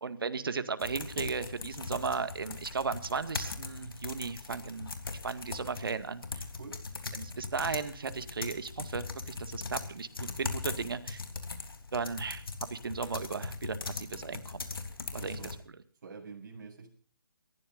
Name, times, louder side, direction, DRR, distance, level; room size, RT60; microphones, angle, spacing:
voice 1, 0.0-4.9 5.2-6.4 7.1-11.2 11.9-12.4 12.7-14.7 15.1-15.4, right 5 dB, 70° right, 10 dB, 2.1 m, -35 dB
sound 1, 0.8-15.6, left 4 dB, 75° left, 3.5 m, -40 dB
voice 2, 15.1-15.5 16.0-16.9, right 5 dB, 50° right, 1 dB, 7.7 m, -46 dB
29.0 x 14.5 x 2.6 m, 0.43 s
hypercardioid pair, 155°, 12 cm